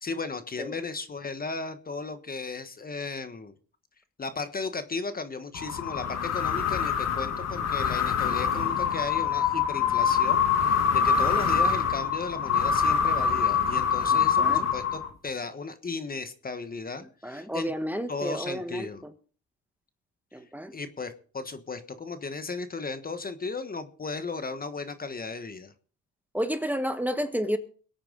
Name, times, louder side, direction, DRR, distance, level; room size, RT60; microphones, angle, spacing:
voice 1, 0.0-3.5 4.2-17.7 18.1-19.0 20.7-25.7, left 4 dB, 30° left, 1.3 m, -35 dB
sound 1, 5.5-15.3, left 7 dB, 60° left, 1.5 m, -25 dB
voice 2, 14.1-14.7 17.2-19.1 20.3-20.7 26.3-27.6, equal, 5° right, 1.4 m, -31 dB
22.0 x 8.9 x 4.0 m
cardioid pair, 90°, 30 cm